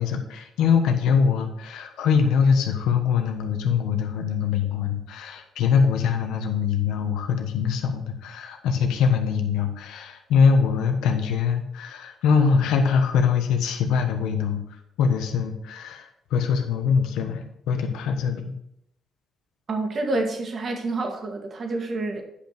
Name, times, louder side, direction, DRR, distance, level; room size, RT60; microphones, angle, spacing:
voice 1, 0.0-14.6 15.0-18.5, left 6 dB, 90° left, 5 dB, 1.3 m, -23 dB
voice 2, 19.7-22.2, right 2 dB, 45° right, 3 dB, 1.9 m, -28 dB
10.0 x 5.9 x 4.5 m, 0.77 s
cardioid pair, 90°, 0 cm